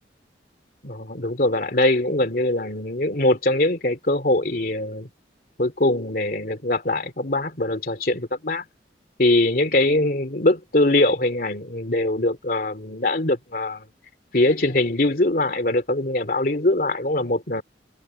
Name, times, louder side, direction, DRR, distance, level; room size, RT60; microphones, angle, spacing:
voice 1, 0.8-5.1 5.6-8.6 9.2-13.9 14.3-17.6, left 2 dB, 55° left, 2.6 m, -22 dB
head